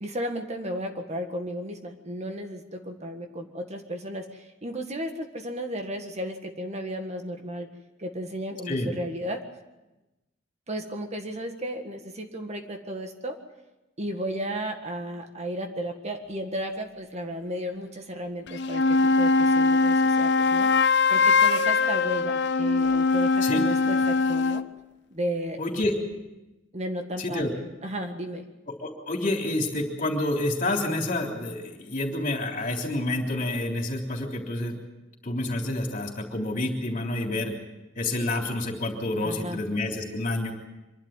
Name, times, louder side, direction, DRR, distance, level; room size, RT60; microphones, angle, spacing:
voice 1, 0.0-7.7 8.0-9.4 10.7-13.4 14.0-20.7 21.1-24.6 25.1-25.6 26.7-28.4 39.2-39.6, equal, 35° right, 5 dB, 1.7 m, -34 dB
sound 1, 18.5-24.7, left 4 dB, 60° left, 0.7 m, -22 dB
voice 2, 25.6-25.9 27.2-27.5 28.7-34.8 35.2-37.5 38.0-40.5, left 2 dB, 45° left, 1 dB, 3.5 m, -28 dB
25.0 x 12.0 x 9.0 m, 1.0 s
head